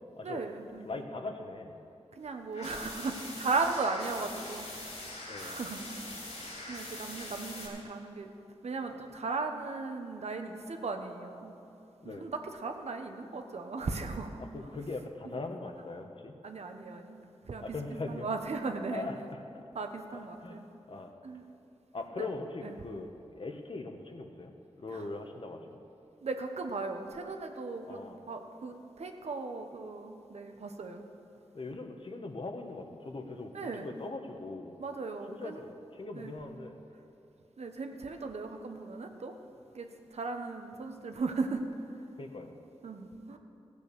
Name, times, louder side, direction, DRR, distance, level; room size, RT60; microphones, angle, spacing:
voice 1, 0.2-0.9 2.1-4.7 5.3-6.1 6.7-8.3 8.6-11.5 12.0-14.4 16.4-17.8 18.1-19.1 19.7-20.7 21.2-21.4 22.2-22.3 22.6-22.7 24.9-25.1 26.2-31.0 33.5-33.9 34.8-35.6 36.1-36.3 37.6-39.4 39.7-41.7 42.8-43.4, right 3 dB, 80° right, 5 dB, 1.0 m, -37 dB
voice 2, 0.8-1.8 5.3-5.6 12.0-12.3 14.5-16.4 17.6-18.3 18.9-19.6 20.4-20.6 20.9-21.1 21.9-24.5 24.8-25.8 27.9-28.2 31.5-33.5 33.8-34.7 35.3-36.7 42.2-42.5, left 3 dB, 55° left, 5 dB, 1.2 m, -40 dB
sound 1, 2.5-7.7, left 2 dB, 80° left, 3.4 m, -43 dB
16.0 x 8.4 x 6.8 m, 2.7 s
wide cardioid pair, 100°, 11 cm